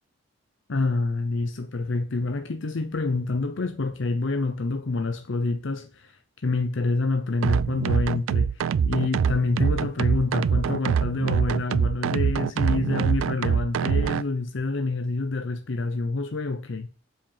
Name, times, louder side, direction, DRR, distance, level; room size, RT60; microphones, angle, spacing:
voice 1, 0.7-16.9, left 3 dB, 65° left, 0.6 m, -27 dB
sound 1, 7.4-14.2, right 7 dB, 80° right, 0.3 m, -24 dB
7.5 x 5.0 x 7.3 m
head